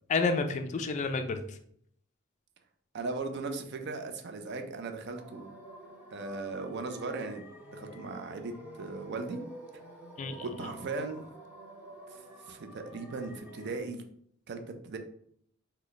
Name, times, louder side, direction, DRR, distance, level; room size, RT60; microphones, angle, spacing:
voice 1, 0.1-1.6 10.2-10.7, left 4 dB, 35° left, 7 dB, 0.3 m, -30 dB
voice 2, 2.9-5.5 6.1-7.4 7.7-9.4 10.3-11.3 12.1-12.2 12.5-14.0 14.5-15.0, right 3 dB, 55° right, 6 dB, 0.4 m, -38 dB
sound 1, 5.1-13.8, right 1 dB, 10° right, 0.8 m, -49 dB
3.1 x 2.2 x 3.8 m, 0.67 s
head